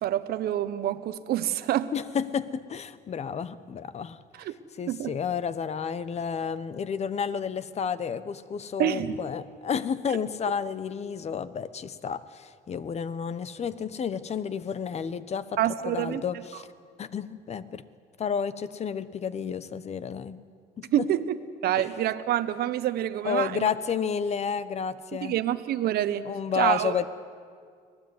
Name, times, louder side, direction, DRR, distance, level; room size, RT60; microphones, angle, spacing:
voice 1, 0.0-1.9 4.4-4.5 4.9-5.2 8.8-9.1 15.6-16.2 20.9-21.4 21.6-23.7 25.2-26.9, right 12 dB, 70° right, 12 dB, 1.0 m, -27 dB
voice 2, 1.9-15.5 15.8-16.7 17.0-17.8 18.2-20.4 20.8-21.1 21.8-21.9 23.2-25.3 26.3-27.1, left 6 dB, 40° left, 16 dB, 1.0 m, -31 dB
25.5 x 17.5 x 9.6 m, 2.1 s
cardioid pair, 110°, 17 cm